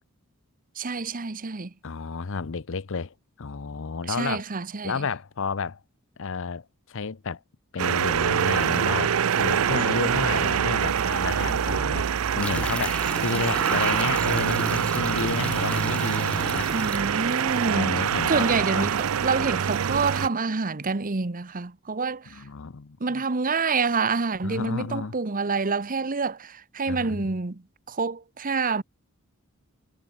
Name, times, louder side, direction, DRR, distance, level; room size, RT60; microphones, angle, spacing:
voice 1, 0.8-1.7 4.1-4.9 16.7-18.0 18.3-22.4 23.0-27.6 27.9-28.8, right 4 dB, 40° right, 1.0 m, -27 dB
voice 2, 1.8-4.4 4.8-5.8 6.2-7.4 7.7-12.1 12.3-16.7 17.6-19.0 22.3-23.2 24.4-25.2 26.9-27.3, left 4 dB, 60° left, 0.7 m, -31 dB
sound 1, 7.8-20.3, right 8 dB, 75° right, 0.5 m, -25 dB
sound 2, 12.4-17.6, left 1 dB, 5° left, 1.8 m, -36 dB
head